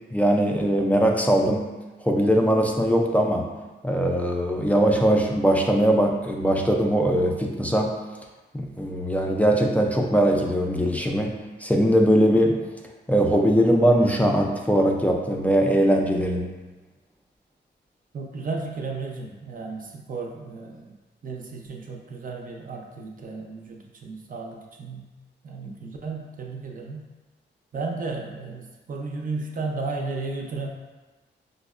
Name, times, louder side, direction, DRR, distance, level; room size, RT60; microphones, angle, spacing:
voice 1, 0.1-1.7 2.0-3.5 3.8-8.0 8.5-11.4 11.6-12.6 13.1-16.5, equal, 10° left, 1 dB, 0.3 m, -21 dB
voice 2, 18.1-20.9 21.2-25.1 25.4-27.0 27.7-30.7, right 3 dB, 45° right, 1 dB, 0.5 m, -34 dB
4.9 x 2.1 x 2.3 m, 1.2 s
wide cardioid pair, 100°, 19 cm